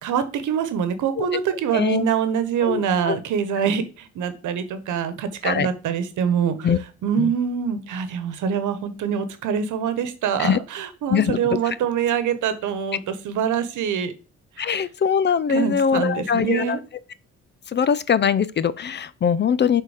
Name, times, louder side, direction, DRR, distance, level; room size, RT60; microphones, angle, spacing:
voice 1, 0.0-6.5 7.0-14.1 14.6-14.8 15.5-16.8, right 7 dB, 80° right, 1.1 m, -24 dB
voice 2, 1.7-2.1 2.6-3.2 5.4-5.7 6.6-6.8 7.2-7.3 10.4-10.6 11.1-11.4 11.7-11.8 14.6-16.8 17.7-19.8, left 7 dB, 35° left, 0.5 m, -22 dB
6.2 x 4.0 x 5.0 m
cardioid pair, 90°, 30 cm